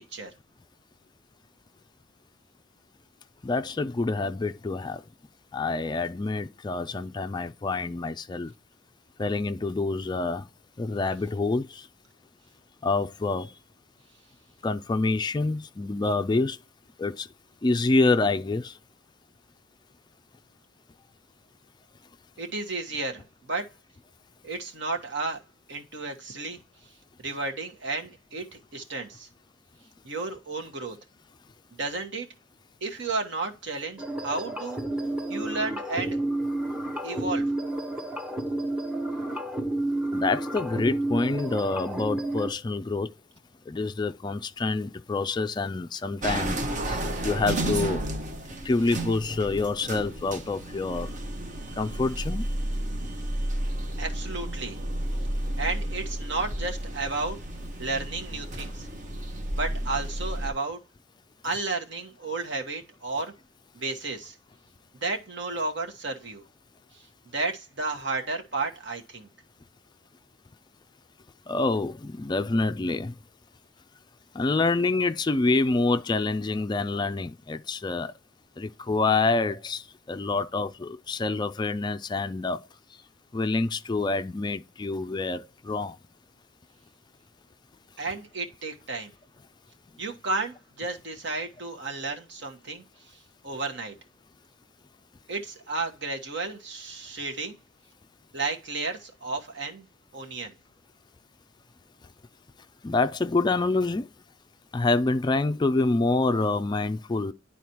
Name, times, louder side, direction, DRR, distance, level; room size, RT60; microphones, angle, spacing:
voice 1, 3.4-5.0 5.5-8.5 9.2-10.5 10.8-11.9 12.8-13.5 14.6-16.6 17.0-17.3 17.6-18.8 40.1-43.1 43.7-46.6 46.9-48.0 48.6-51.1 51.8-52.5 71.5-73.2 74.3-78.1 78.6-82.7 83.3-86.0 102.8-104.1 104.7-107.3, left 3 dB, 20° left, 0.3 m, -27 dB
voice 2, 22.4-23.7 24.4-25.4 25.7-26.6 27.2-29.3 30.0-31.0 31.8-32.3 32.8-34.8 35.3-36.2 37.0-37.4 54.0-54.8 55.6-57.4 57.8-58.9 59.5-60.8 61.4-63.3 63.7-64.4 65.0-66.4 66.9-67.1 67.3-69.3 88.0-89.1 90.0-92.8 93.4-93.9 95.3-97.6 98.3-99.8 100.1-100.5, right 3 dB, 60° right, 1.3 m, -32 dB
sound 1, 34.0-42.5, right 1 dB, 5° right, 0.7 m, -30 dB
sound 2, 46.2-60.5, right 1 dB, 40° right, 0.9 m, -32 dB
11.0 x 4.1 x 3.0 m
head